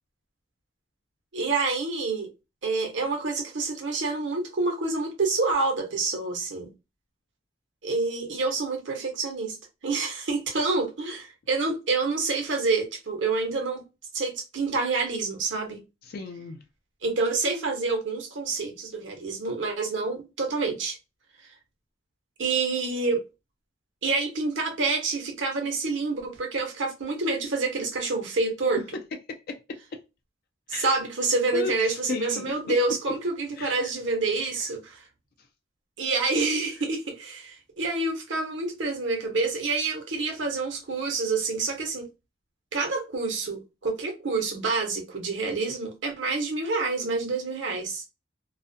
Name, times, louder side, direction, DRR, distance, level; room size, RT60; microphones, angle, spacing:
voice 1, 1.3-2.3 2.6-6.7 7.8-9.6 9.8-13.8 14.1-15.8 17.0-21.0 22.4-23.2 24.0-28.8 30.7-35.0 36.0-42.0 42.7-48.0, right 3 dB, 75° right, 0.9 m, -27 dB
voice 2, 16.0-16.6 28.8-29.0 29.3-30.0 30.7-30.9 31.5-32.6 33.6-33.9 35.4-35.5, left 4 dB, 55° left, 0.4 m, -35 dB
2.3 x 2.1 x 2.6 m
head